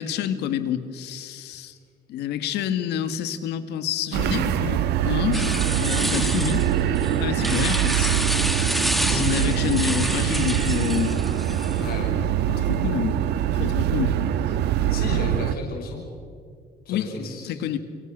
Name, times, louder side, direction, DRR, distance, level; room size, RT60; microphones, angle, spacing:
voice 1, 0.0-1.8 2.1-5.5 5.8-6.7 7.2-8.2 9.1-11.3 12.5-13.2 13.5-14.2 16.9-17.1 17.4-17.8, left 10 dB, 80° left, 10 dB, 1.9 m, -28 dB
sound 1, 4.1-15.5, right 10 dB, 80° right, 1.3 m, -23 dB
sound 2, 5.3-11.9, equal, ahead, 1.5 m, -29 dB
voice 2, 11.8-12.2 14.9-16.1 16.9-17.6, left 4 dB, 65° left, 1 dB, 5.9 m, -33 dB
30.0 x 23.5 x 6.6 m, 2.1 s
cardioid pair, 110°, 17 cm